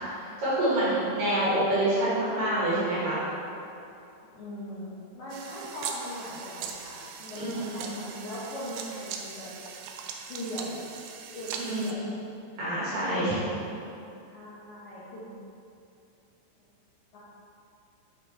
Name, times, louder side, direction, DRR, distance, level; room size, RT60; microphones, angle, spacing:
voice 1, 0.2-3.2 7.4-7.7 11.6-11.9 12.6-13.4, right 1 dB, 60° right, -9 dB, 2.7 m, -27 dB
voice 2, 0.8-1.2 4.3-9.5 10.3-10.8 11.3-12.2 13.0-13.7 14.3-15.3 17.1-17.2, equal, 75° left, -10 dB, 1.7 m, -39 dB
sound 1, 5.3-11.9, right 6 dB, 85° right, 2.4 m, -40 dB
8.7 x 5.2 x 4.2 m, 2.7 s
omnidirectional pair, 5.5 m